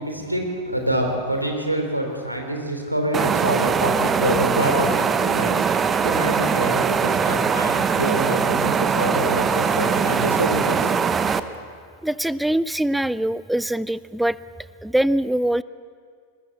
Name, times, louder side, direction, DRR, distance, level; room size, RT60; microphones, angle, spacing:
voice 1, 0.0-10.9, equal, 90° right, 3 dB, 3.4 m, -26 dB
sound 1, 3.1-11.4, right 6 dB, 20° right, 0.9 m, -21 dB
voice 2, 12.0-14.4 14.8-15.6, right 1 dB, 5° right, 17 dB, 0.5 m, -23 dB
20.5 x 20.5 x 8.4 m, 2.2 s
figure-of-eight pair, 90°, 0 cm